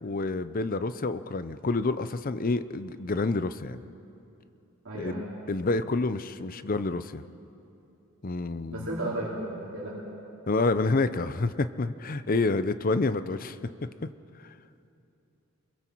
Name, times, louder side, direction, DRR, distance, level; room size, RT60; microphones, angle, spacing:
voice 1, 0.0-3.8 4.9-7.2 8.2-8.9 10.5-13.6 14.0-14.1, left 3 dB, 40° left, 12 dB, 0.6 m, -28 dB
voice 2, 4.8-5.3 8.7-10.0, right 1 dB, 65° right, -6 dB, 3.3 m, -34 dB
28.0 x 22.0 x 4.6 m, 2.8 s
head